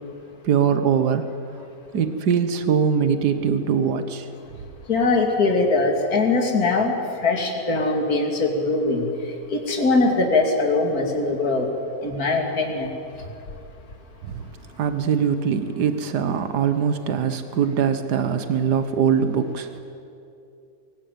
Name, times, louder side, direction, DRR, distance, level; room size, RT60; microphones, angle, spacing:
voice 1, 0.4-1.3 1.9-4.3 14.2-14.5 14.8-19.8, right 7 dB, 85° right, 10 dB, 1.7 m, -22 dB
voice 2, 4.9-9.1 9.5-11.7 12.0-12.9, left 3 dB, 65° left, 3 dB, 3.0 m, -21 dB
23.0 x 18.5 x 9.3 m, 2.7 s
omnidirectional pair, 1.7 m